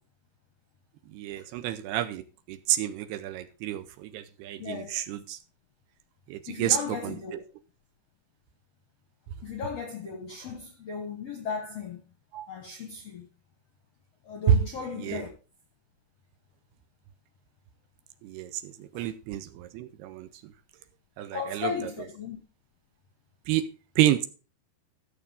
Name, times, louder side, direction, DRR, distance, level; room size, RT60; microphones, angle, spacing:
voice 1, 1.1-2.2 2.5-5.4 6.3-7.2 12.3-12.5 14.5-14.6 15.0-15.2 18.2-20.5 21.2-21.9 23.5-23.7 24.0-24.3, right 11 dB, 80° right, 2.6 m, -29 dB
voice 2, 4.6-5.0 6.5-7.4 9.4-12.0 12.5-13.3 14.2-15.3 18.9-19.1 21.3-22.4, left 6 dB, 70° left, 1.5 m, -36 dB
14.0 x 7.0 x 3.5 m
omnidirectional pair, 4.9 m